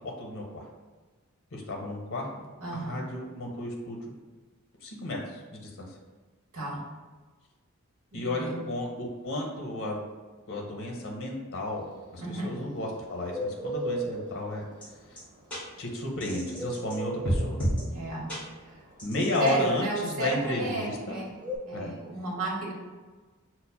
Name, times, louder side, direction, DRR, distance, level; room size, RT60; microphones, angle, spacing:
voice 1, 0.0-0.7 1.5-2.3 2.7-4.0 4.8-5.9 8.1-10.0 10.5-11.8 12.1-14.6 15.1-15.2 15.8-17.6 19.0-21.2 21.7-21.9, left 1 dB, 65° left, -1 dB, 0.6 m, -33 dB
voice 2, 2.6-3.0 6.5-6.8 8.1-8.5 12.2-12.5 17.9-18.3 19.4-21.4 21.6-22.7, right 1 dB, 80° right, -2 dB, 0.9 m, -32 dB
Bird, 11.6-21.6, right 1 dB, 20° right, 0.5 m, -36 dB
sound 1, 14.8-14.9 15.2-15.3 15.5-15.6 16.2-17.0 17.2-17.8 18.3-18.4 19.0-19.5, equal, 5° left, 1.2 m, -30 dB
5.5 x 2.1 x 2.2 m, 1.3 s
head